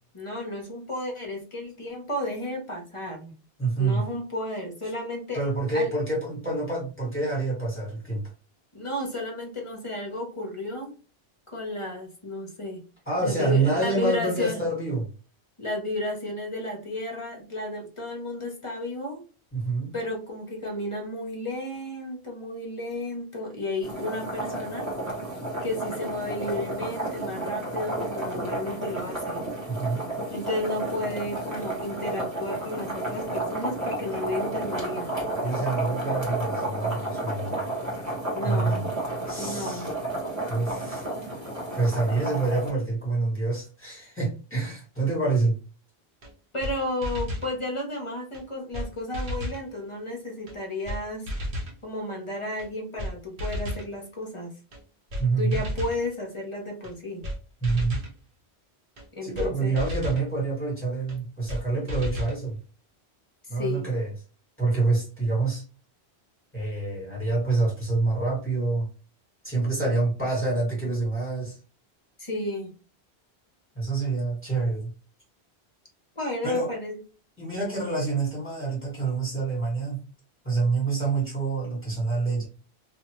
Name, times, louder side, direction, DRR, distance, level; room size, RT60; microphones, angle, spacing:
voice 1, 0.1-3.3 3.8-5.4 5.7-5.9 8.7-10.9 11.5-12.8 13.2-14.6 15.6-19.2 19.9-24.9 25.6-29.4 30.3-35.1 38.3-38.9 39.4-39.9 46.5-51.3 51.8-54.6 55.4-57.2 59.1-59.7 63.5-63.9 72.2-72.7 76.2-76.9, left 1 dB, 35° left, 0 dB, 0.7 m, -33 dB
voice 2, 3.6-4.0 5.3-8.2 13.1-15.0 19.5-19.9 29.7-30.0 35.4-37.7 38.4-38.8 39.3-39.9 40.5-41.1 41.7-45.5 55.2-55.6 57.6-58.0 59.2-62.6 63.5-64.1 64.6-65.6 66.5-68.9 69.4-71.6 73.7-74.9 76.4-76.7 77.4-80.0 80.4-82.5, right 3 dB, 10° left, -6 dB, 1.6 m, -27 dB
sound 1, 23.8-42.7, right 2 dB, 15° right, 1.1 m, -32 dB
sound 2, 46.2-46.3 46.6-46.7 47.0-47.5 48.3-48.4 48.7-48.9 49.1-49.6 50.5-50.6 50.9-51.0 51.3-51.8 52.6-52.7 53.0-53.1 53.4-53.9 54.7-54.8 55.1-55.2 55.5-56.0 56.8-56.9 57.2-57.4 57.6-58.1 59.0-59.1 59.4-59.5 59.8-60.2 61.1-61.2 61.5-61.6 61.9-62.4, equal, 60° right, 0.9 m, -32 dB
2.7 x 2.5 x 2.9 m, 0.34 s
omnidirectional pair, 1.1 m